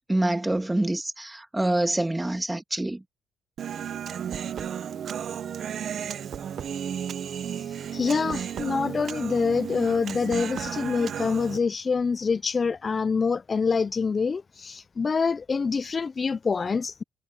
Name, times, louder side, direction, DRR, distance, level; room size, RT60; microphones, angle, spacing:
voice 1, 0.1-3.0, right 1 dB, 10° right, 1.7 m, -26 dB
Human voice, 3.6-11.6, right 8 dB, 60° right, 0.8 m, -33 dB
voice 2, 7.6-17.0, left 5 dB, 35° left, 0.4 m, -26 dB
cardioid pair, 90°, 0 cm